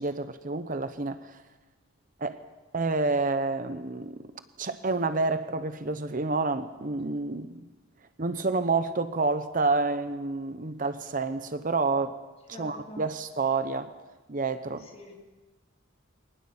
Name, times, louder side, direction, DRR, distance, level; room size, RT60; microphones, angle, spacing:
voice 1, 0.0-1.4 2.2-2.4 2.7-4.3 4.6-7.7 8.2-12.2 12.6-13.9 14.3-14.9, right 3 dB, 40° right, 11 dB, 0.8 m, -29 dB
voice 2, 12.5-13.0 14.9-15.2, equal, 30° left, 1 dB, 3.4 m, -43 dB
24.0 x 19.0 x 7.2 m, 1.2 s
head